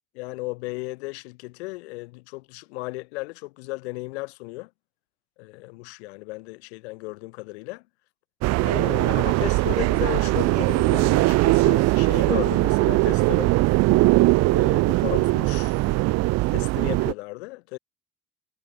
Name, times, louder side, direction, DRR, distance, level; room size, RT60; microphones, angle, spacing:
voice 1, 0.1-4.7 5.4-7.8 8.6-13.5 14.5-16.1 16.5-17.8, left 24 dB, 70° left, 4.3 m, -35 dB
sound 1, 8.4-17.1, right 21 dB, 50° right, 0.5 m, -20 dB
figure-of-eight pair, 55°, 34 cm